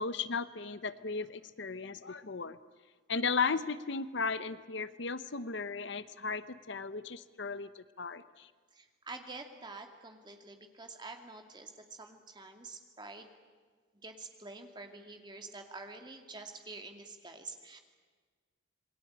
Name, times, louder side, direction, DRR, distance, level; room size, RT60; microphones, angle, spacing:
voice 1, 0.0-2.6 3.1-8.5, left 4 dB, 55° left, 13 dB, 0.8 m, -35 dB
voice 2, 8.7-13.3 14.0-17.8, right 3 dB, 20° right, 4 dB, 2.4 m, -47 dB
27.5 x 21.5 x 8.9 m, 1.5 s
head